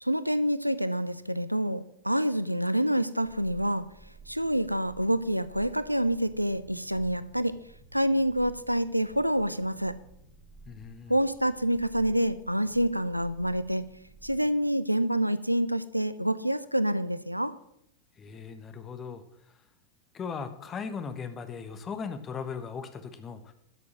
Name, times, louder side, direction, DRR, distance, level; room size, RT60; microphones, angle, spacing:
voice 1, 0.0-3.9 4.3-7.6 7.9-9.9 11.1-13.8 14.2-17.6, equal, 90° right, 15 dB, 0.5 m, -27 dB
sound 1, 3.2-14.6, right 2 dB, 40° right, 5.2 m, -54 dB
voice 2, 10.7-11.1 18.2-19.6 20.1-23.5, left 6 dB, 25° left, 9 dB, 1.3 m, -38 dB
12.0 x 6.8 x 6.3 m, 0.78 s
figure-of-eight pair, 90°, 0 cm